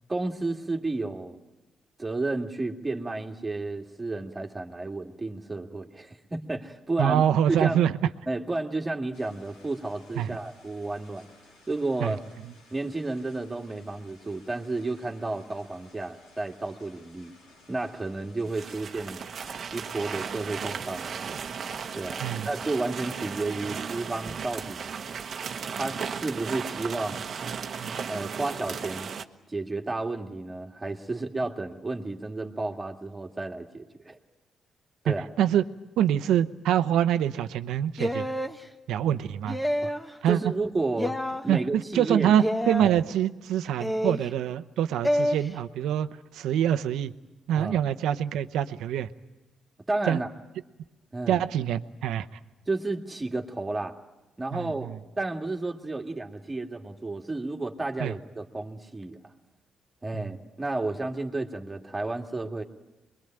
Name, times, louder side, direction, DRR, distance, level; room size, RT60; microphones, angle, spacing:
voice 1, 0.1-1.4 2.0-7.2 7.5-7.8 8.3-11.3 11.7-12.2 12.7-17.4 17.7-19.3 19.7-21.2 21.9-24.8 25.7-27.2 28.1-29.1 29.5-34.2 35.0-35.3 39.8-39.9 40.2-41.2 41.4-42.3 42.8-43.0 47.6-47.8 49.9-50.3 51.1-51.4 52.7-54.0 54.4-54.9 55.2-59.2 60.0-62.6, right 2 dB, 20° right, 3 dB, 2.0 m, -32 dB
voice 2, 7.0-7.9 10.2-10.3 12.0-12.2 22.2-22.5 35.1-35.6 36.0-38.3 38.9-39.6 40.2-40.5 41.5-47.1 47.5-49.1 50.1-50.2 51.3-52.3 54.5-55.0 58.0-58.1 60.1-60.3, right 10 dB, 85° right, 11 dB, 0.9 m, -25 dB
sound 1, 9.1-23.3, left 2 dB, 90° left, 6.9 m, -57 dB
sound 2, 18.4-29.2, right 6 dB, 50° right, 1.1 m, -35 dB
sound 3, 38.0-38.6 39.5-40.1 41.0-41.4 42.4-42.9 43.8-44.3 45.0-45.4, equal, 10° left, 1.3 m, -27 dB
25.0 x 22.0 x 9.0 m, 1.1 s
cardioid pair, 90°, 0 cm